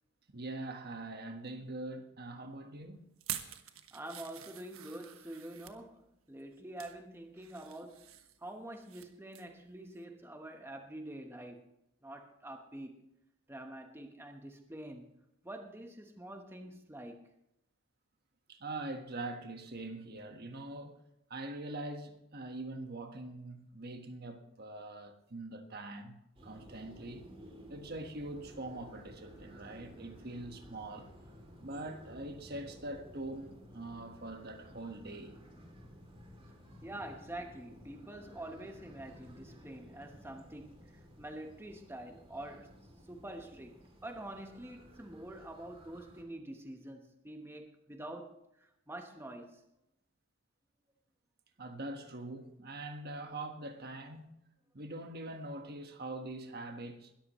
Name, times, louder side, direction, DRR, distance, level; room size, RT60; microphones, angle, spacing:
voice 1, 0.3-3.0 18.5-21.0 21.3-26.2 26.4-27.2 27.7-31.1 31.6-35.4 51.6-54.4 54.7-57.1, right 2 dB, 50° right, 1.4 m, -43 dB
sound 1, 3.2-5.8 6.4-7.0 7.4-9.1 9.3-9.6 10.0-10.1, right 11 dB, 85° right, 1.3 m, -46 dB
voice 2, 3.9-8.1 8.4-11.6 12.0-13.1 13.5-15.1 15.4-17.2 36.8-42.7 43.1-49.6, right 1 dB, 10° right, 1.1 m, -46 dB
sound 2, 26.4-46.2, equal, 25° right, 2.8 m, -55 dB
21.0 x 13.5 x 3.1 m
head